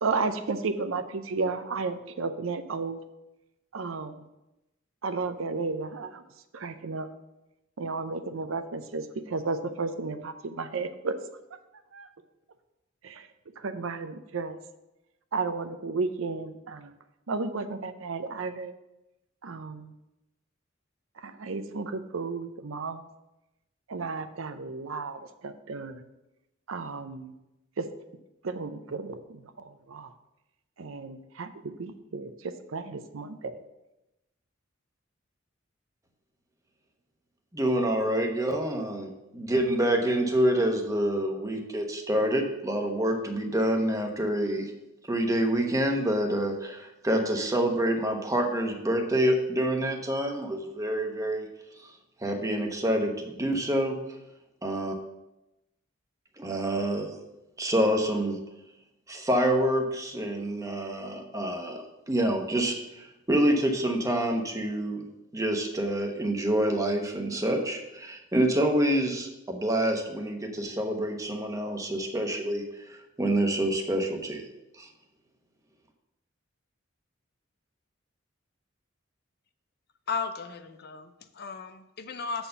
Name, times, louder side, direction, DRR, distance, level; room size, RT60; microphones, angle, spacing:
voice 1, 0.0-3.0 3.7-4.2 5.0-6.2 6.5-7.1 7.8-11.2 11.9-12.1 13.0-13.3 13.6-14.6 15.3-16.9 17.3-18.7 19.4-19.9 21.2-23.1 23.9-26.0 26.7-27.3 27.8-27.9 28.4-30.1 30.8-33.6, right 4 dB, 80° right, 10 dB, 0.6 m, -33 dB
voice 2, 37.5-44.7 45.1-51.5 52.2-54.0 54.6-54.9 56.4-57.2 57.6-58.4 59.1-65.1 65.3-72.6 72.9-74.4 74.8-74.9, right 1 dB, 15° right, 3 dB, 1.0 m, -27 dB
voice 3, 80.1-82.5, left 5 dB, 50° left, 9 dB, 0.6 m, -35 dB
7.3 x 4.4 x 6.6 m, 0.94 s
head